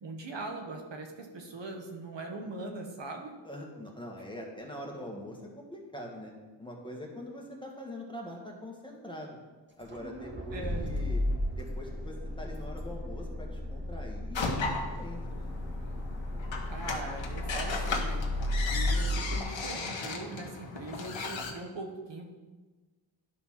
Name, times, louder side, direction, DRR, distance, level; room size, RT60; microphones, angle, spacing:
voice 1, 0.0-3.3 10.5-10.9 16.7-22.3, right 2 dB, 70° right, 3 dB, 1.3 m, -41 dB
voice 2, 3.4-6.3 6.6-9.4 9.8-11.2 11.5-15.5, left 1 dB, 10° left, -1 dB, 1.8 m, -43 dB
Accelerating revving vroom, 9.8-19.4, left 1 dB, 25° right, 1.7 m, -34 dB
sound 1, 14.3-21.5, left 3 dB, 75° left, 1.3 m, -36 dB
11.0 x 4.3 x 5.8 m, 1.3 s
wide cardioid pair, 85°, 46 cm